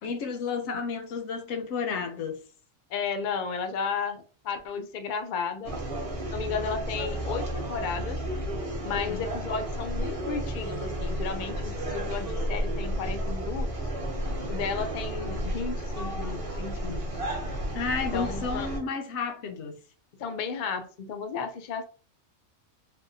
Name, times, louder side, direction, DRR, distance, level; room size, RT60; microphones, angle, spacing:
voice 1, 0.0-2.4 8.9-9.2 17.7-19.8, left 5 dB, 75° left, 0.9 m, -32 dB
voice 2, 2.9-5.8 6.3-8.2 8.8-13.7 14.5-17.2 18.1-18.7 20.2-21.9, left 5 dB, 60° left, 0.5 m, -33 dB
sound 1, 5.6-18.8, right 1 dB, 35° right, 0.7 m, -32 dB
3.5 x 2.1 x 2.6 m
omnidirectional pair, 1.2 m